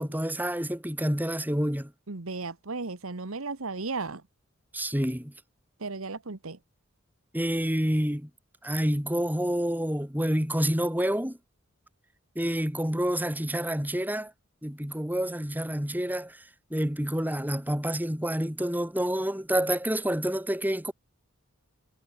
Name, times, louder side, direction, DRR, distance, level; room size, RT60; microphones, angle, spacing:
voice 1, 0.0-1.9 4.7-5.3 7.3-8.3 8.6-11.4 12.3-14.3 14.6-16.4 16.7-20.9, equal, 10° right, 3.0 m, -28 dB
voice 2, 2.1-4.2 5.8-6.6, right 3 dB, 85° right, 1.4 m, -35 dB
head